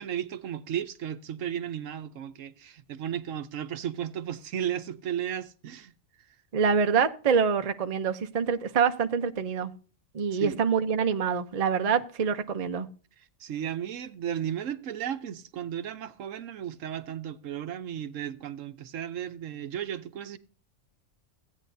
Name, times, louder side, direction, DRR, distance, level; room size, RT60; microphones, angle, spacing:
voice 1, 0.0-5.9 10.3-10.6 13.2-20.4, right 9 dB, 70° right, 1.0 m, -34 dB
voice 2, 6.5-9.7 10.1-12.9, right 6 dB, 40° right, 0.5 m, -26 dB
16.0 x 9.2 x 2.7 m
omnidirectional pair, 1.5 m